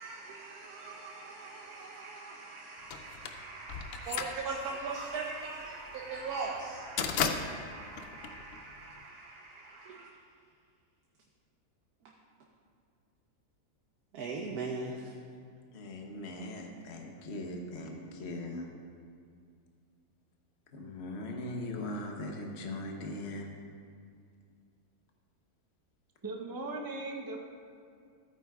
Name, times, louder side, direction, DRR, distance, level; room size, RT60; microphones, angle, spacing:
voice 1, 0.0-10.1 14.1-15.2, right 4 dB, 75° right, 1.3 m, -40 dB
sound 1, 2.9-9.0, left 6 dB, 80° left, 0.5 m, -36 dB
voice 2, 15.7-18.7 20.7-23.5, left 1 dB, 50° left, 1.1 m, -40 dB
voice 3, 26.2-27.4, right 2 dB, 25° right, 0.5 m, -38 dB
15.0 x 8.8 x 2.4 m
omnidirectional pair, 1.7 m